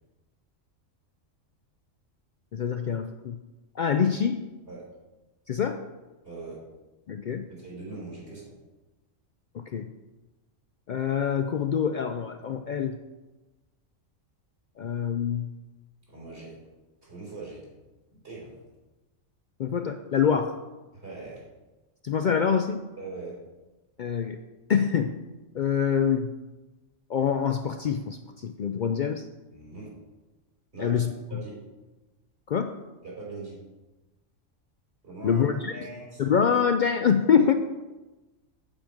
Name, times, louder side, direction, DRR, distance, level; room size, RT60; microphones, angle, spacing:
voice 1, 2.5-3.4 3.8-4.4 5.5-5.8 7.1-7.5 9.5-9.9 10.9-13.0 14.8-15.5 19.6-20.6 22.0-22.8 24.0-24.4 24.7-25.2 25.5-26.3 27.1-29.3 30.8-31.1 32.5-32.7 35.2-35.7 36.2-37.5, left 7 dB, 80° left, 8 dB, 0.4 m, -25 dB
voice 2, 6.2-6.6 7.5-8.5 16.1-16.5 17.0-17.6 18.1-18.5 20.9-21.4 23.0-23.3 29.5-29.9 30.7-31.0 31.3-31.5 33.0-33.5 35.0-36.2, right 3 dB, 55° right, -6 dB, 4.1 m, -41 dB
8.8 x 7.7 x 5.1 m, 1.1 s
omnidirectional pair, 1.3 m